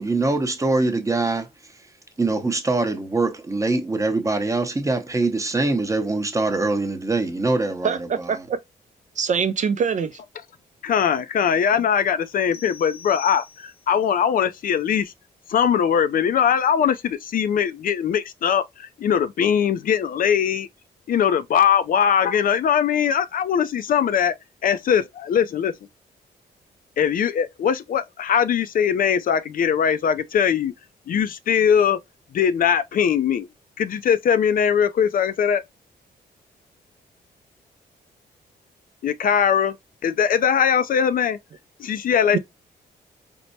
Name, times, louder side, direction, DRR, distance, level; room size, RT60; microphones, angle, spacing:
voice 1, 0.0-1.7 2.2-8.5, right 2 dB, 20° right, 0.7 m, -23 dB
voice 2, 7.8-8.6 9.2-10.2 42.3-42.4, right 6 dB, 45° right, 0.4 m, -23 dB
voice 3, 10.8-15.1 15.5-20.7 21.1-24.3 24.6-25.7 27.0-30.7 31.1-32.0 32.3-33.5 33.8-35.6 39.0-39.8 40.0-41.4 41.8-42.4, left 8 dB, 55° left, 0.4 m, -21 dB
sound 1, 12.5-14.0, left 7 dB, 75° left, 0.8 m, -43 dB
4.4 x 2.1 x 2.6 m
cardioid pair, 95°, 17 cm